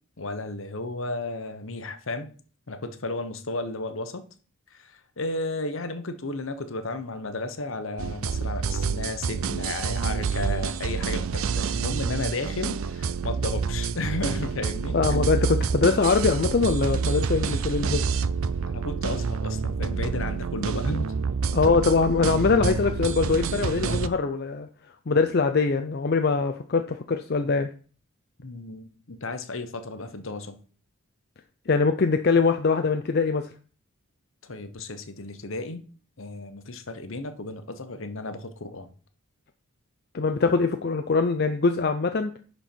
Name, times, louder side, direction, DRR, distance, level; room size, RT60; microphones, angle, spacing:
voice 1, 0.2-2.3 2.7-4.2 4.7-15.3 18.6-21.1 21.7-21.8 28.4-30.6 34.4-35.8 36.2-38.9, left 2 dB, 65° left, 1.0 m, -33 dB
sound 1, 8.0-24.1, right 5 dB, 75° right, 0.5 m, -28 dB
voice 2, 14.9-18.0 21.5-24.7 25.1-27.7 31.7-33.4 40.1-42.3, left 4 dB, 45° left, 0.5 m, -23 dB
11.0 x 4.4 x 4.5 m
head